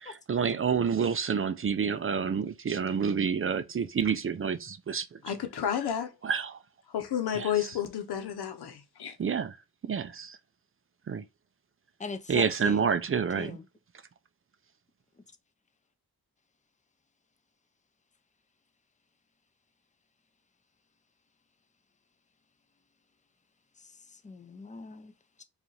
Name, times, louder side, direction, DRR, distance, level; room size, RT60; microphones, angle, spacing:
voice 1, 0.0-5.2 6.2-6.6 7.3-7.5 9.2-9.6 9.8-10.4 11.1-11.2 12.3-13.6, right 6 dB, 35° right, 0.4 m, -28 dB
voice 2, 5.2-6.1 6.9-9.2, left 9 dB, 90° left, 0.9 m, -31 dB
voice 3, 12.0-12.8 13.4-13.6 24.2-25.1 25.4-25.5, left 4 dB, 20° left, 0.6 m, -40 dB
5.0 x 2.5 x 3.1 m
wide cardioid pair, 100°, 38 cm